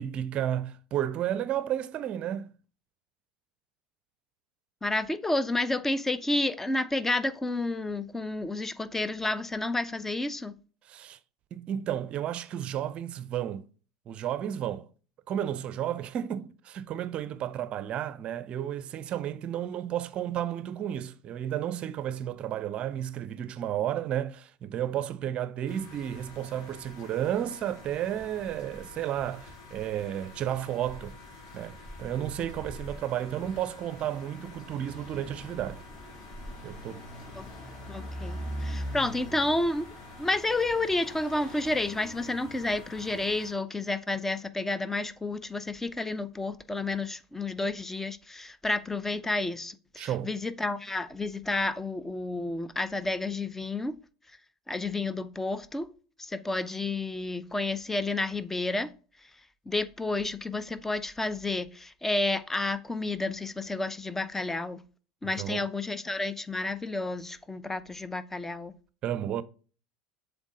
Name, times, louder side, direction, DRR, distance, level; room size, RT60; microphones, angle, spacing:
voice 1, 0.0-2.5 10.9-11.2 11.5-13.6 14.1-14.9 15.3-31.2 31.5-35.8 36.6-37.0 50.0-50.3 65.2-65.6 69.0-69.4, right 10 dB, 40° right, 0.5 m, -32 dB
voice 2, 4.8-10.6 37.3-37.5 37.9-39.9 40.2-54.0 54.7-55.9 56.2-58.9 59.2-59.3 59.7-64.8 65.2-68.7, left 2 dB, 10° left, 0.5 m, -30 dB
sound 1, 25.7-43.5, left 4 dB, 60° left, 1.8 m, -50 dB
sound 2, 26.0-43.3, equal, 30° left, 2.4 m, -44 dB
7.3 x 3.5 x 3.8 m
hypercardioid pair, 80°, 3 cm